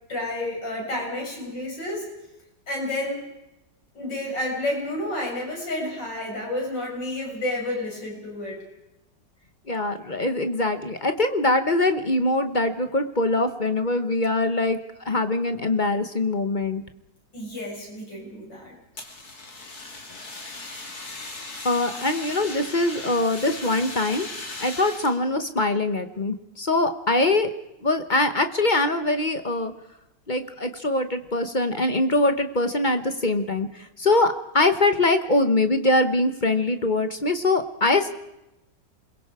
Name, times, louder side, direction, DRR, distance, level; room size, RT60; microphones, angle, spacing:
voice 1, 0.1-2.1 2.7-3.2 3.9-8.6 17.3-18.7, left 1 dB, 85° left, -1 dB, 7.0 m, -30 dB
voice 2, 9.7-14.8 15.0-16.8 21.6-24.3 24.6-27.5 27.8-29.7 30.3-33.7 34.0-38.1, left 2 dB, 30° left, 8 dB, 1.0 m, -23 dB
Fire, 18.9-25.2, left 2 dB, 60° left, 3.3 m, -38 dB
28.0 x 22.0 x 4.9 m, 0.90 s
omnidirectional pair, 1.9 m